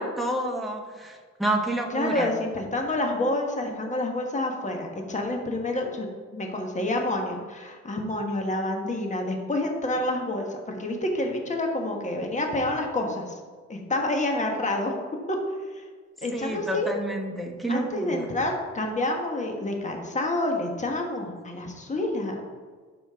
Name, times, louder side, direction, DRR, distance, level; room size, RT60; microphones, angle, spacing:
voice 1, 0.0-2.3 16.3-18.3, right 1 dB, ahead, 1 dB, 1.3 m, -29 dB
voice 2, 1.9-13.4 13.7-14.9 15.3-15.4 15.6-15.9 16.2-17.0 17.7-22.4, left 1 dB, 25° left, 2 dB, 1.5 m, -28 dB
11.5 x 5.1 x 3.7 m, 1.5 s
cardioid pair, 90°, 30 cm